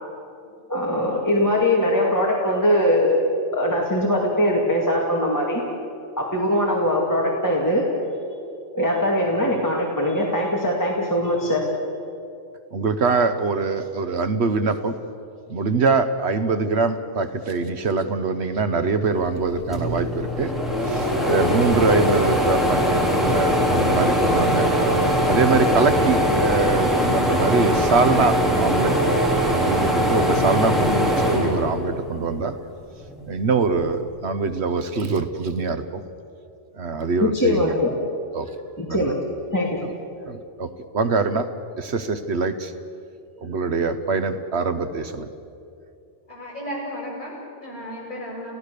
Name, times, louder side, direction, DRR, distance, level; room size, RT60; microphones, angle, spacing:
voice 1, 0.7-3.2 3.5-5.6 6.2-7.9 8.7-11.6 37.2-37.9 38.8-39.2 39.5-39.8, left 1 dB, 15° left, -3 dB, 2.3 m, -21 dB
voice 2, 12.7-15.0 15.5-20.5 20.8-24.7 25.3-28.9 29.5-32.6 33.3-36.0 36.8-37.8 38.3-38.5 38.9-39.1 40.3-41.5 41.8-42.7 43.4-45.3, right 4 dB, 70° right, 10 dB, 1.2 m, -23 dB
sound 1, 19.4-19.5 19.7-32.3 32.7-33.9, equal, ahead, 3.5 m, -21 dB
voice 3, 46.3-48.5, equal, 45° left, -6 dB, 8.0 m, -34 dB
30.0 x 16.0 x 6.7 m, 2.6 s
omnidirectional pair, 1.2 m